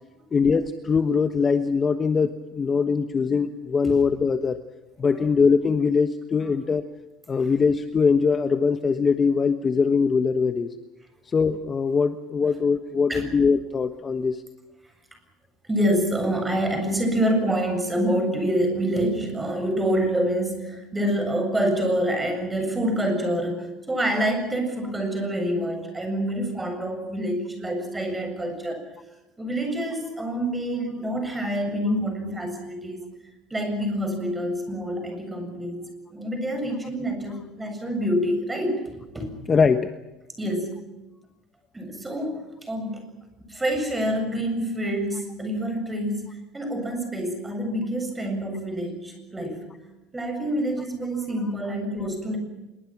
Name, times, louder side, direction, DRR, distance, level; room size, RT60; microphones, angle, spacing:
voice 1, 0.3-4.6 5.0-6.8 7.3-10.7 11.3-14.4 39.5-39.9, left 5 dB, 25° left, 9 dB, 1.2 m, -22 dB
voice 2, 15.7-28.8 29.4-33.1 33.5-39.3 40.4-40.8 41.7-43.1 43.5-49.6 50.1-52.4, equal, 10° right, 5 dB, 7.5 m, -27 dB
26.5 x 23.0 x 6.1 m, 1.0 s
cardioid pair, 140°, 0 cm